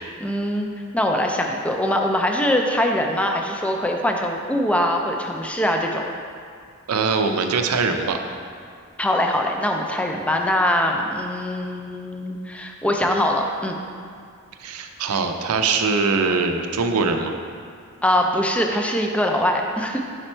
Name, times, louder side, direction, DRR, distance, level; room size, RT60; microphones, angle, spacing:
voice 1, 0.2-6.1 9.0-13.8 18.0-20.0, left 1 dB, 5° left, 2 dB, 0.4 m, -22 dB
voice 2, 6.9-8.2 14.6-17.3, right 4 dB, 80° right, 5 dB, 0.5 m, -22 dB
5.0 x 4.4 x 4.3 m, 2.2 s
head